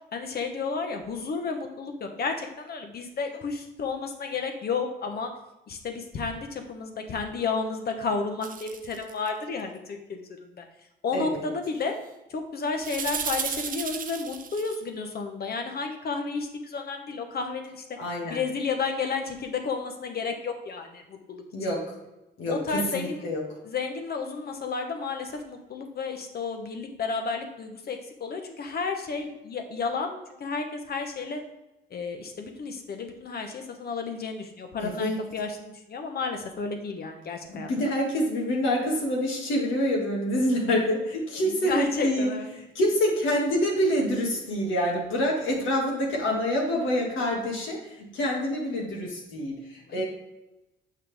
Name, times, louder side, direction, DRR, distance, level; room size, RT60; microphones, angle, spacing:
voice 1, 0.1-5.3 5.7-10.7 11.0-11.9 12.3-17.8 18.3-21.4 22.5-23.3 23.6-31.4 31.9-37.7 41.5-42.5 49.9-50.0, left 4 dB, 50° left, 5 dB, 1.1 m, -32 dB
sound 1, 8.4-9.3 12.8-14.8, right 7 dB, 45° right, 0.6 m, -33 dB
voice 2, 11.1-11.5 18.0-18.4 21.5-21.9 22.4-23.4 34.8-35.2 37.5-50.0, equal, 80° left, -2 dB, 2.0 m, -27 dB
6.7 x 5.7 x 3.5 m, 0.96 s
cardioid pair, 90°, 20 cm